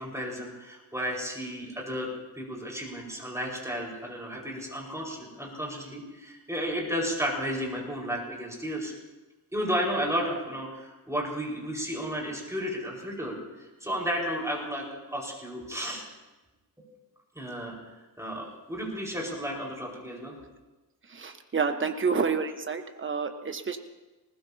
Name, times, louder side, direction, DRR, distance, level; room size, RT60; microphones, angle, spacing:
voice 1, 0.0-2.1 2.4-8.9 9.5-16.0 16.8-16.9 17.4-20.4, equal, 10° right, -3 dB, 5.2 m, -33 dB
voice 2, 21.1-23.8, right 5 dB, 30° right, 6 dB, 1.3 m, -29 dB
20.0 x 19.5 x 2.9 m, 1.1 s
cardioid pair, 100°, 38 cm